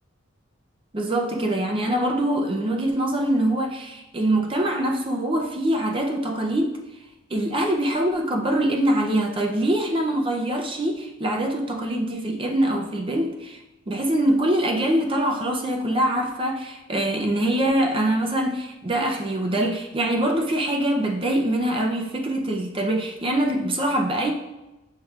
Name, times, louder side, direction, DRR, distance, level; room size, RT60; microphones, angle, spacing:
voice 1, 0.9-6.8 7.3-13.6 13.9-24.3, right 1 dB, 25° right, 2 dB, 0.5 m, -24 dB
6.3 x 3.3 x 2.4 m, 1.0 s
head